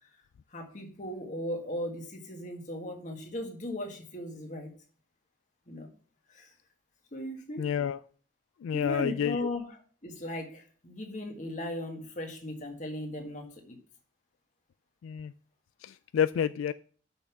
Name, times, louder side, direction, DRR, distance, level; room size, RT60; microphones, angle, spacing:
voice 1, 0.5-4.7 5.7-5.9 6.3-6.5 7.1-7.7 8.7-13.8, left 1 dB, 40° left, 3 dB, 1.6 m, -37 dB
voice 2, 7.6-8.0 8.6-9.5 15.0-15.3 15.8-16.7, left 8 dB, 85° left, 14 dB, 0.3 m, -29 dB
6.6 x 5.8 x 5.8 m, 0.43 s
head